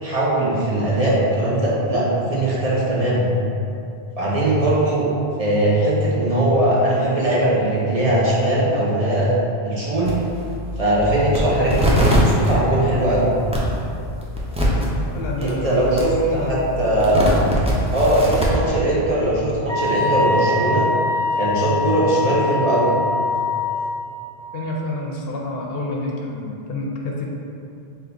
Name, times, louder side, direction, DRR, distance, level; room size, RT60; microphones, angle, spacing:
voice 1, 0.0-3.3 4.2-5.1 5.4-9.4 9.6-10.1 10.8-13.3 15.4-17.4 17.9-20.9 21.4-22.9, right 1 dB, 40° right, -7 dB, 0.7 m, -20 dB
sound 1, 10.0-18.5, equal, 10° right, 0.4 m, -23 dB
voice 2, 15.1-16.7 24.5-27.2, left 2 dB, 70° left, -2 dB, 0.8 m, -28 dB
Wind instrument woodwind instrument, 19.7-24.1, left 3 dB, 80° right, 1.2 m, -23 dB
3.7 x 2.7 x 3.8 m, 2.6 s
omnidirectional pair, 1.1 m